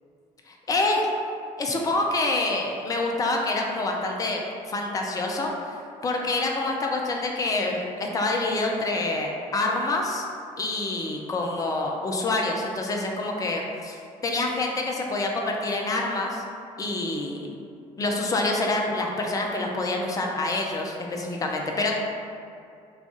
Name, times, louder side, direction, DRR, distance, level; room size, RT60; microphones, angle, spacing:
voice 1, 0.5-1.0 1.6-4.4 4.7-5.7 6.0-10.3 10.6-16.4 16.8-17.4 18.0-21.9, left 2 dB, 20° left, 0 dB, 0.4 m, -27 dB
2.4 x 2.3 x 3.8 m, 2.5 s
figure-of-eight pair, 45°, 18 cm